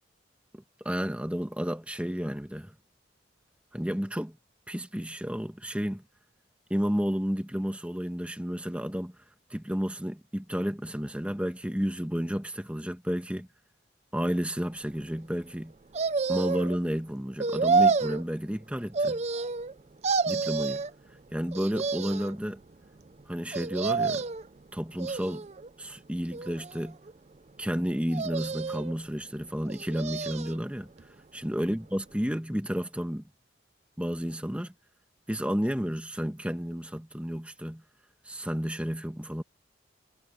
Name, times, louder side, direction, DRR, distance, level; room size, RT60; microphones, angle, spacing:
voice 1, 0.5-2.7 3.7-4.4 4.7-6.0 6.7-9.2 9.5-13.5 14.1-15.7 16.3-19.2 20.3-20.9 21.3-22.6 23.3-24.2 24.7-25.5 25.8-27.0 27.6-30.9 31.3-33.2 34.0-34.7 35.3-37.8 38.2-39.4, equal, 5° right, 1.4 m, -31 dB
sound 1, 15.9-16.8 17.4-18.2 18.9-19.7 20.0-20.9 21.5-22.3 23.5-24.5 25.0-25.7 26.3-27.1 28.1-28.9 29.7-30.6 31.0-31.1, right 4 dB, 35° right, 0.5 m, -29 dB
head